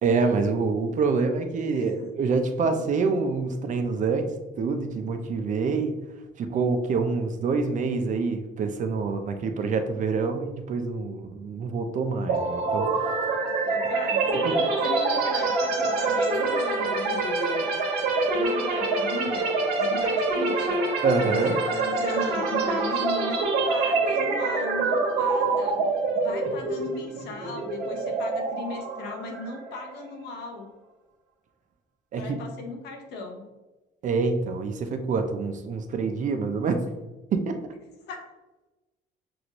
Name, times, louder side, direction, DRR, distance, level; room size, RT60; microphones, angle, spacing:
voice 1, 0.0-6.0 6.4-12.9 14.3-14.6 21.0-21.6 32.1-32.4 34.0-36.8 37.3-37.6, right 4 dB, 50° right, 6 dB, 0.6 m, -26 dB
voice 2, 1.7-2.1 13.4-17.7 18.3-20.8 21.2-25.8 26.2-30.7 32.2-33.4 38.1-38.3, left 3 dB, 80° left, 3 dB, 0.9 m, -37 dB
sound 1, 12.3-30.0, right 3 dB, 80° right, 1.2 m, -26 dB
6.1 x 2.6 x 3.0 m, 1.1 s
cardioid pair, 110°, 17 cm